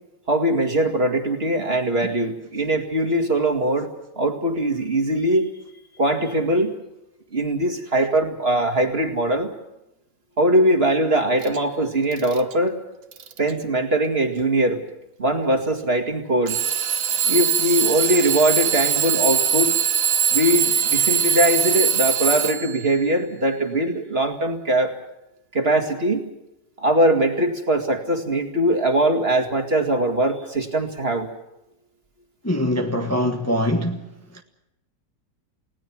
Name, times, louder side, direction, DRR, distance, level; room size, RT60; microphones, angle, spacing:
voice 1, 0.3-3.9 4.2-5.5 6.0-6.7 7.3-9.5 10.4-12.8 13.4-14.8 15.2-16.6 17.2-19.7 20.3-24.9 25.5-26.3 26.8-31.3, right 1 dB, 35° right, 2.4 m, -21 dB
Alarm / Clock, 11.4-11.6 12.1-12.5 13.1-13.5 14.4-14.5 16.5-22.9, right 8 dB, 55° right, 1.4 m, -22 dB
voice 2, 32.4-34.4, left 1 dB, 10° left, 1.3 m, -24 dB
29.5 x 18.0 x 6.1 m
omnidirectional pair, 1.9 m